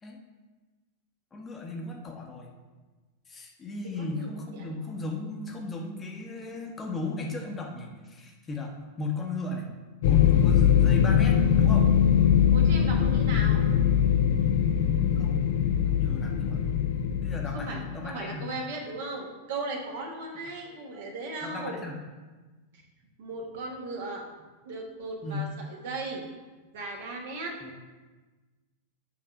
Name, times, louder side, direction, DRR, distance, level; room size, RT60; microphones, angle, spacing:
voice 1, 1.3-2.5 3.3-9.7 10.1-11.9 15.2-16.6 17.1-18.5 21.4-22.0 25.2-25.5 27.6-27.7, left 3 dB, 20° left, 0 dB, 1.0 m, -36 dB
voice 2, 4.0-4.7 12.5-13.6 17.5-21.7 23.2-24.2 24.6-26.2 26.7-27.5, right 2 dB, 55° right, 1 dB, 1.2 m, -37 dB
sound 1, 10.0-17.9, left 8 dB, 55° left, 0.4 m, -22 dB
7.6 x 3.2 x 5.1 m, 1.3 s
figure-of-eight pair, 90°, 0 cm